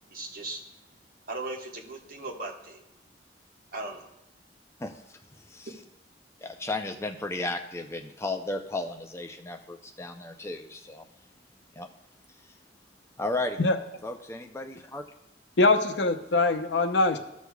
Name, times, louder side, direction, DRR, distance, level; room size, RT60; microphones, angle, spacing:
voice 1, 0.1-0.6 1.3-2.8 3.7-4.1, right 2 dB, 55° right, 1 dB, 1.4 m, -37 dB
voice 2, 4.8-5.7 6.4-11.1 11.8-11.9 13.2-13.6 14.0-15.0, left 2 dB, 15° left, 5 dB, 0.5 m, -34 dB
voice 3, 15.6-17.2, left 2 dB, 75° left, 7 dB, 0.7 m, -23 dB
14.5 x 6.3 x 2.3 m, 0.90 s
head